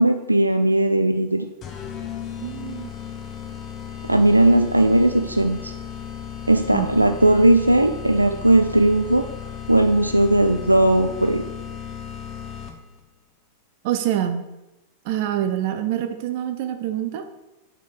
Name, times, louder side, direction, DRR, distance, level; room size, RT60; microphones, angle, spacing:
voice 1, 0.0-1.5 4.0-5.7 6.5-9.3 9.7-11.4, right 1 dB, 85° right, 8 dB, 0.4 m, -17 dB
sound 1, 1.6-13.0, left 8 dB, 30° left, 1.2 m, -35 dB
voice 2, 2.4-2.9 6.7-6.9 13.8-14.4 15.0-17.2, right 11 dB, 50° right, 8 dB, 1.0 m, -25 dB
6.5 x 6.3 x 6.6 m, 0.96 s
figure-of-eight pair, 90°, 0 cm